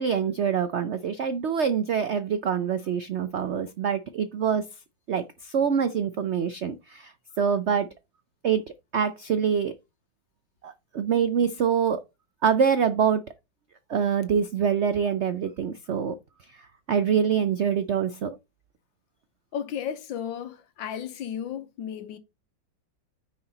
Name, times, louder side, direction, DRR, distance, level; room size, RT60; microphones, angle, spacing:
voice 1, 0.0-4.7 5.1-7.9 8.4-8.6 8.9-9.7 10.6-12.0 12.4-13.2 13.9-16.2 16.9-18.4, right 7 dB, 90° right, 0.6 m, -25 dB
voice 2, 19.5-22.2, left 9 dB, 90° left, 1.7 m, -34 dB
9.6 x 4.9 x 4.1 m
omnidirectional pair, 2.0 m